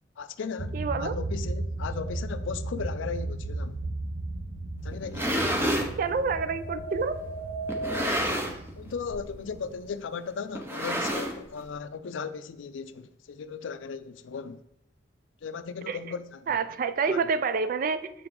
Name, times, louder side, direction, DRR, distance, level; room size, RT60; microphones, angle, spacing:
voice 1, 0.2-3.8 4.8-5.5 8.8-14.6 15.4-16.6 17.0-17.2, left 5 dB, 80° left, 0.4 m, -37 dB
sound 1, 0.6-9.9, right 2 dB, 80° right, 0.7 m, -36 dB
voice 2, 0.7-1.2 6.0-7.2 15.9-16.0 16.5-18.1, right 5 dB, 45° right, 0.3 m, -28 dB
sound 2, 2.0-2.7 6.0-8.1, right 2 dB, 30° left, 1.0 m, -38 dB
sound 3, 4.9-5.9 6.7-6.8 7.7-8.7 9.0-9.3 9.6-9.7 10.5-11.6, equal, 15° right, 0.8 m, -29 dB
6.9 x 4.8 x 3.7 m
head